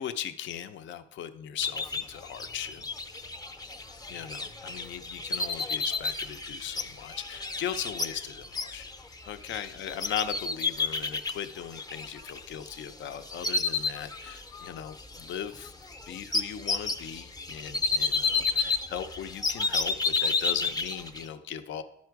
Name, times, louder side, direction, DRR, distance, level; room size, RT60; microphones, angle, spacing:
voice 1, 0.0-2.9 4.1-8.9 9.3-15.7 16.1-21.8, left 9 dB, 70° left, 10 dB, 0.6 m, -38 dB
sound 1, 1.6-12.9 13.2-14.7 15.0-21.3, left 4 dB, 20° left, 0.6 m, -31 dB
10.5 x 4.3 x 4.6 m, 0.77 s
cardioid pair, 90°, 20 cm